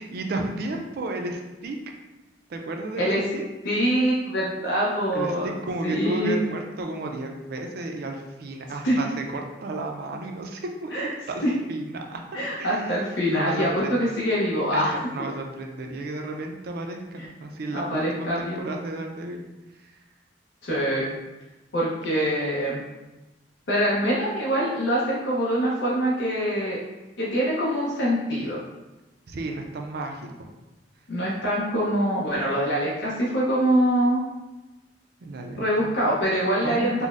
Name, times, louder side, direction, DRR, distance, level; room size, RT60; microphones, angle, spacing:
voice 1, 0.0-1.8 2.5-3.5 5.1-11.4 11.7-12.2 12.6-12.9 13.3-14.0 14.7-19.4 19.8-19.9 29.3-30.5 35.2-35.9 36.6-37.1, right 2 dB, 60° right, 3 dB, 0.4 m, -33 dB
voice 2, 3.6-5.5 5.8-6.4 8.8-9.0 10.9-11.1 11.4-11.5 12.3-14.9 17.2-17.3 17.7-18.7 20.6-21.1 21.7-22.8 23.7-26.8 27.2-28.6 31.1-34.2 35.6-37.1, equal, 75° left, -6 dB, 0.7 m, -24 dB
3.9 x 2.1 x 2.4 m, 1.1 s
head